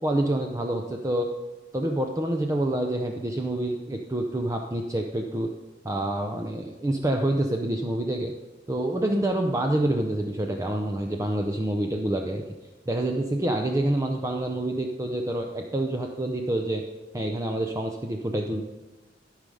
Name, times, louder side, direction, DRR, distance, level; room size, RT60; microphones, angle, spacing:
voice 1, 0.0-1.3 1.7-5.5 5.8-8.3 8.7-12.4 12.9-16.8 17.1-18.6, right 1 dB, 20° right, 3 dB, 0.6 m, -27 dB
13.5 x 4.9 x 5.4 m, 1.2 s
head